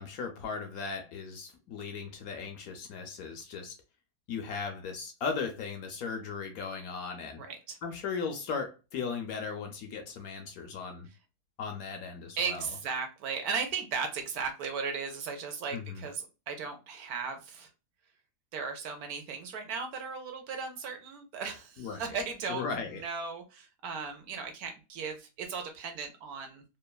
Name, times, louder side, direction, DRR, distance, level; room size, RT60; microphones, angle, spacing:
voice 1, 0.0-3.7 4.3-7.4 7.8-11.1 11.6-12.6 15.7-16.0 21.8-22.2 22.5-23.0, left 5 dB, 70° left, 0.9 m, -37 dB
voice 2, 7.4-7.8 12.4-17.7 18.5-22.6 23.0-26.6, right 5 dB, 70° right, 1.0 m, -36 dB
3.1 x 2.2 x 2.2 m
omnidirectional pair, 1.8 m